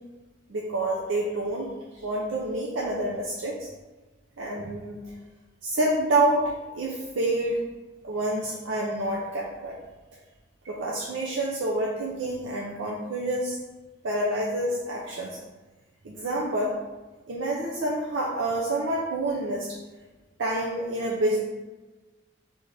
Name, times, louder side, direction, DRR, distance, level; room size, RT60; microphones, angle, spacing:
voice 1, 0.5-1.7 1.9-3.7 4.4-5.1 5.6-7.6 8.0-9.8 10.6-13.6 14.0-15.4 16.0-16.8 17.3-19.8 20.4-21.4, right 1 dB, 80° right, -3 dB, 0.6 m, -28 dB
4.1 x 3.5 x 3.3 m, 1.2 s
head